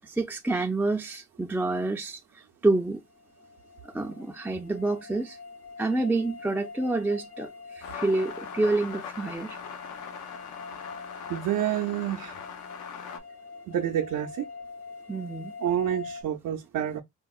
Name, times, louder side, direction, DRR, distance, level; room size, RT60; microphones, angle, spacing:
voice 1, 0.0-3.0 3.8-5.4 5.8-9.6 15.1-15.5, right 2 dB, 5° right, 0.3 m, -28 dB
sound 1, 3.1-16.2, left 4 dB, 55° left, 1.0 m, -44 dB
sound 2, 7.8-13.2, left 7 dB, 80° left, 0.7 m, -41 dB
voice 2, 11.3-12.4 13.7-14.5 15.6-17.0, right 11 dB, 85° right, 0.5 m, -28 dB
4.4 x 2.0 x 2.2 m
cardioid pair, 90°, 30 cm